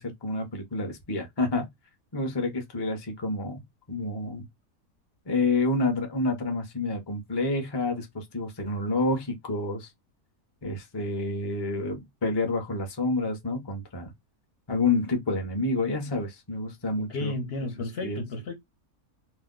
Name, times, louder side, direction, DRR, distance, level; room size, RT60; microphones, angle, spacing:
voice 1, 0.0-1.7 2.1-3.6 3.9-4.5 5.3-9.9 10.6-14.1 14.7-17.3 18.0-18.2, left 2 dB, 25° left, 0.5 m, -28 dB
voice 2, 17.0-18.5, left 2 dB, 55° left, 0.8 m, -33 dB
2.6 x 2.1 x 3.6 m
omnidirectional pair, 1.6 m